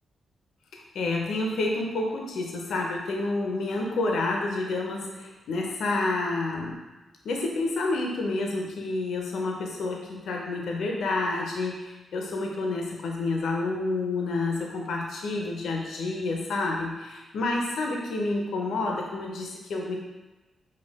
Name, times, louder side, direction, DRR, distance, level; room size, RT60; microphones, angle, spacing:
voice 1, 0.7-6.8 7.2-20.0, left 2 dB, 80° left, 0 dB, 0.6 m, -29 dB
5.3 x 2.3 x 3.5 m, 1.1 s
cardioid pair, 90°, 0 cm